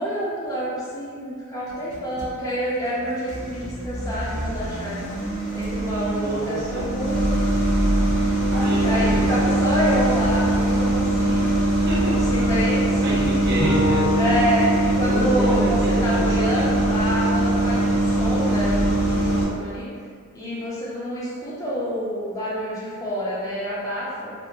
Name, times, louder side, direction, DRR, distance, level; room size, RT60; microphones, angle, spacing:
voice 1, 0.0-5.0 5.5-7.3 8.6-11.6 12.3-13.2 14.2-19.9 20.3-24.3, equal, 15° left, -7 dB, 0.4 m, -27 dB
sound 1, 1.7-2.3 2.9-19.5, right 1 dB, 85° left, 0.7 m, -22 dB
voice 2, 6.0-6.9 8.5-9.9 11.8-12.2 13.0-14.1 15.1-16.7, equal, 50° right, -6 dB, 0.6 m, -29 dB
Bowed string instrument, 13.6-16.9, left 2 dB, 65° left, 0.9 m, -28 dB
2.8 x 2.0 x 2.4 m, 2.1 s
head